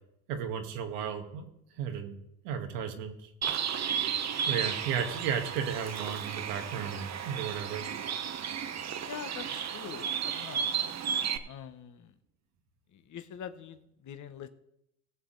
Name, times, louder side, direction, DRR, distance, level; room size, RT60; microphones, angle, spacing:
voice 1, 0.3-1.4 1.8-2.1 2.4-3.3 4.5-7.9, right 7 dB, 85° right, 4 dB, 1.7 m, -34 dB
Bird, 3.4-11.4, right 8 dB, 35° right, 1.0 m, -33 dB
voice 2, 9.0-10.8 11.5-12.1 12.9-14.5, left 9 dB, 40° left, 9 dB, 1.1 m, -44 dB
18.0 x 7.1 x 3.9 m, 0.79 s
hypercardioid pair, 80°, 46 cm